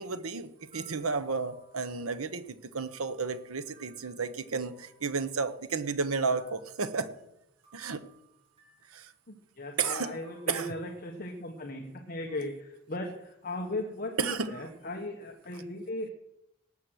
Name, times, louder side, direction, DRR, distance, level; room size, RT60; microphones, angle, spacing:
voice 1, 0.0-7.3 7.7-8.0 8.9-9.1 9.8-10.2 10.5-10.7 14.2-14.7, right 4 dB, 85° right, 12 dB, 1.0 m, -32 dB
sound 1, 0.6-2.4 2.9-5.4 5.8-7.2 7.6-9.0 10.0-11.5, right 2 dB, 25° right, 5.0 m, -62 dB
voice 2, 9.3-16.1, left 1 dB, 40° left, 3 dB, 1.1 m, -37 dB
18.0 x 7.7 x 6.3 m, 0.85 s
head